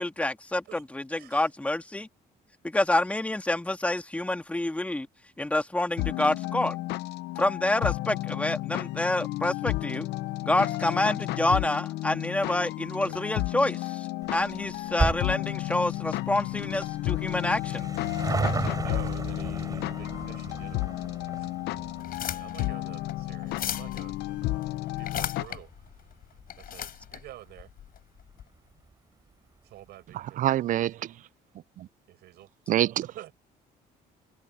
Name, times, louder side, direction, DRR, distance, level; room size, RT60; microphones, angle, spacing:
voice 1, 0.0-2.1 2.6-5.1 5.4-6.8 7.4-10.1 10.4-17.8, left 2 dB, 10° left, 1.9 m, -28 dB
voice 2, 1.1-1.5 13.0-13.2 18.6-21.1 21.4-21.5 22.2-25.7 26.6-27.7 29.6-30.4 32.1-32.5 33.1-33.3, right 15 dB, 75° right, 6.4 m, -48 dB
sound 1, 6.0-25.4, left 17 dB, 80° left, 0.7 m, -32 dB
sound 2, 14.2-27.0 27.3-27.4 28.2-28.3 28.5-28.6 28.9-29.0, right 4 dB, 20° right, 3.6 m, -36 dB
sound 3, 21.9-28.4, left 10 dB, 60° left, 5.4 m, -38 dB
voice 3, 30.1-31.1 31.8-31.9 32.7-33.0, right 13 dB, 50° right, 0.4 m, -26 dB
cardioid pair, 110°, 17 cm